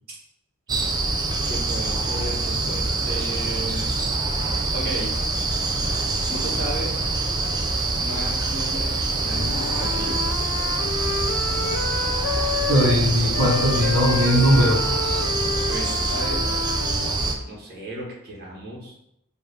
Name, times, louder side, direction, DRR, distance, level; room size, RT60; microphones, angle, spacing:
sound 1, 0.7-17.3, right 3 dB, 20° right, 0.4 m, -25 dB
voice 1, 0.7-1.0 1.4-3.9 4.7-5.1 6.3-7.1 8.0-10.2 15.7-16.4 17.4-18.9, right 1 dB, 50° right, -3 dB, 1.3 m, -34 dB
Wind instrument woodwind instrument, 9.3-13.0 13.3-17.2, left 5 dB, 75° left, 0.4 m, -30 dB
voice 2, 12.7-14.8, equal, 65° right, -6 dB, 1.0 m, -19 dB
4.6 x 2.6 x 3.3 m, 0.76 s
head